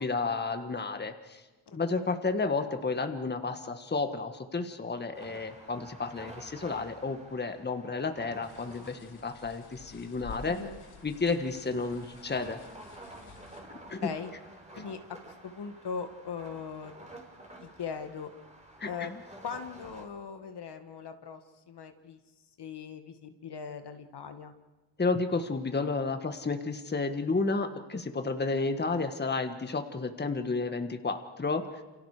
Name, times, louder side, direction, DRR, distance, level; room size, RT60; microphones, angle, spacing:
voice 1, 0.0-1.4 1.7-10.6 11.0-12.6 13.9-14.1 18.8-19.2 25.0-31.6, left 3 dB, 20° left, 7 dB, 1.7 m, -31 dB
sound 1, 5.1-20.0, right 1 dB, 15° right, 4.2 m, -51 dB
sound 2, 8.4-13.6, left 4 dB, 85° left, 2.9 m, -50 dB
voice 2, 10.5-10.8 14.0-14.3 14.8-16.9 17.6-18.3 18.8-19.1 19.4-21.4 21.7-22.2 22.6-24.5, left 6 dB, 55° left, 7 dB, 1.9 m, -40 dB
29.0 x 28.5 x 5.0 m, 1.2 s
cardioid pair, 120°, 49 cm